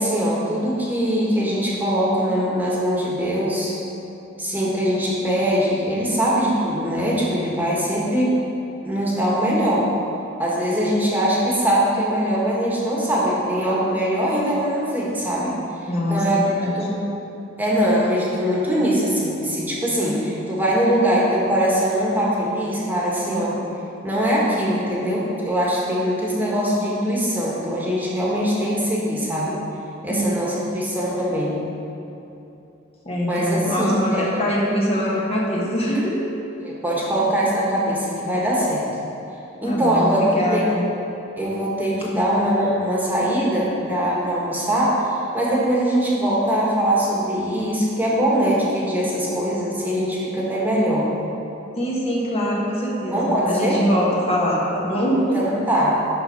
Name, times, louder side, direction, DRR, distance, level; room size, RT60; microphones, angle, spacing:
voice 1, 0.0-3.7 4.4-8.3 8.8-9.9 10.4-15.5 16.1-17.0 17.6-23.6 24.0-29.6 30.0-31.6 33.3-34.4 36.6-38.8 39.6-40.2 40.5-40.6 41.4-51.0 53.1-53.8 55.1-56.0, equal, 10° right, -6 dB, 1.5 m, -22 dB
voice 2, 15.9-16.7 30.1-30.3 33.0-36.2 39.6-40.8 51.8-55.4, equal, 30° left, -5 dB, 1.3 m, -23 dB
11.5 x 4.0 x 5.5 m, 2.9 s
head